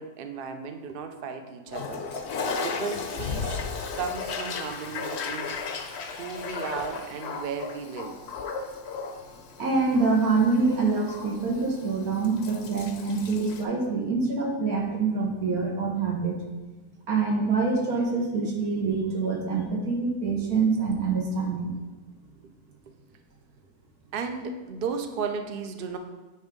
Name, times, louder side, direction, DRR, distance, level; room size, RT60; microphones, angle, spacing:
voice 1, 0.0-2.1 2.6-3.6 3.9-5.6 6.1-8.2 22.9-23.0 24.1-26.0, right 5 dB, 55° right, 6 dB, 0.6 m, -35 dB
Toilet flush, 1.7-13.6, left 4 dB, 60° left, 0.8 m, -35 dB
voice 2, 9.6-16.4 17.1-21.7, right 4 dB, 80° right, 0 dB, 1.6 m, -25 dB
8.0 x 3.5 x 5.2 m, 1.2 s
omnidirectional pair, 1.5 m